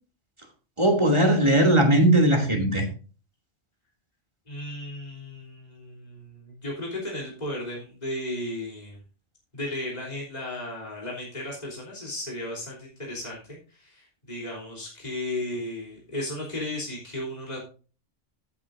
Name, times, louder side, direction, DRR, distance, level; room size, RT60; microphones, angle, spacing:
voice 1, 0.8-2.8, right 1 dB, 25° right, 2.6 m, -19 dB
voice 2, 4.5-9.0 9.5-17.6, left 1 dB, 35° left, 3.5 m, -35 dB
14.0 x 8.9 x 2.6 m
omnidirectional pair, 1.2 m